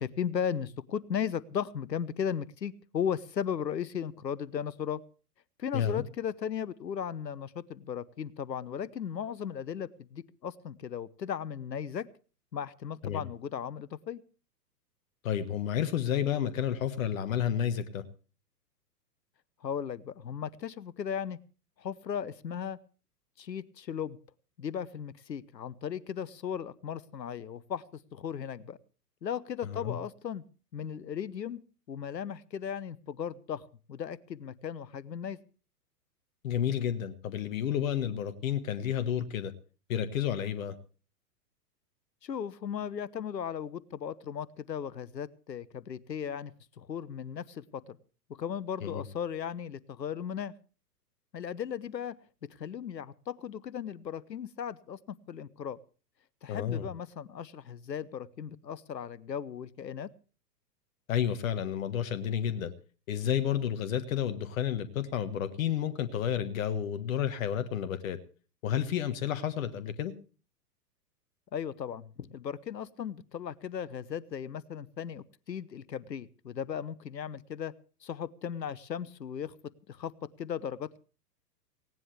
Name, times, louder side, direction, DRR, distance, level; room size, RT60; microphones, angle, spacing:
voice 1, 0.0-5.0 5.6-12.1 12.5-14.2 19.6-21.4 21.8-22.8 23.4-24.2 24.6-27.8 28.1-28.8 29.2-30.4 30.7-31.6 31.9-35.4 42.2-48.0 48.3-50.5 51.3-52.2 52.4-55.0 55.3-55.8 56.4-60.1 71.5-77.7 78.0-79.5 79.9-80.1 80.4-81.0, left 8 dB, 80° left, 20 dB, 1.0 m, -36 dB
voice 2, 15.2-18.0 29.7-30.0 36.4-39.5 39.9-40.7 48.8-49.0 56.5-56.9 61.1-62.7 63.1-68.2 68.6-70.1, left 9 dB, 50° left, 10 dB, 1.4 m, -31 dB
18.5 x 17.5 x 3.3 m, 0.37 s
figure-of-eight pair, 115°, 49 cm